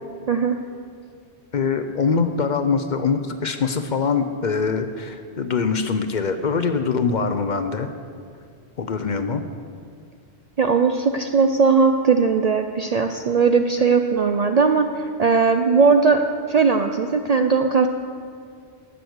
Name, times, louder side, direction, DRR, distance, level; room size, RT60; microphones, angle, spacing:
voice 1, 0.3-0.6 10.6-17.9, right 5 dB, 55° right, 6 dB, 0.4 m, -19 dB
voice 2, 1.5-7.9 8.8-9.4, left 5 dB, 50° left, 8 dB, 0.7 m, -23 dB
12.0 x 6.3 x 7.9 m, 2.3 s
omnidirectional pair, 1.1 m